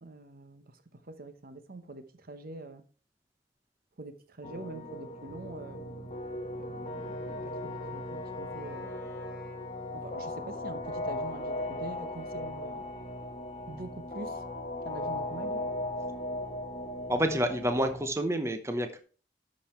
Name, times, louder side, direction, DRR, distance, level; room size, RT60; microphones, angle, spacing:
voice 1, 0.0-2.8 4.0-6.1 6.4-8.9 9.9-12.9 13.7-14.4 14.8-15.6, right 2 dB, 55° right, 0.9 m, -45 dB
sound 1, 4.4-18.1, left 1 dB, 35° left, 1.5 m, -37 dB
Wind instrument woodwind instrument, 6.8-10.8, left 4 dB, 15° left, 3.3 m, -52 dB
voice 2, 17.1-19.0, equal, 15° right, 0.8 m, -28 dB
11.5 x 5.4 x 4.3 m
head